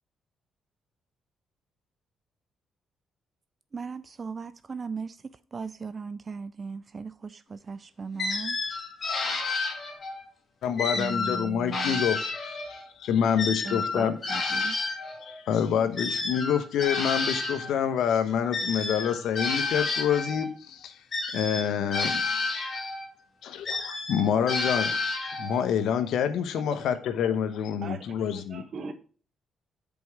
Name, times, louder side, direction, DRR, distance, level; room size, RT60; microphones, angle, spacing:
voice 1, 3.7-5.2 5.5-8.6 11.0-12.0 13.6-14.8, right 5 dB, 35° right, 0.4 m, -37 dB
sound 1, 8.2-10.2 10.8-12.9 13.4-17.7 18.5-20.5 21.1-23.1 23.6-25.6, left 3 dB, 45° left, 1.9 m, -30 dB
voice 2, 10.6-14.2 15.2-20.9 21.3-22.2 23.4-25.0 25.4-28.6, left 8 dB, 75° left, 0.9 m, -27 dB
voice 3, 27.8-28.9, right 4 dB, 55° right, 1.3 m, -40 dB
5.3 x 4.7 x 6.3 m
cardioid pair, 90°, 0 cm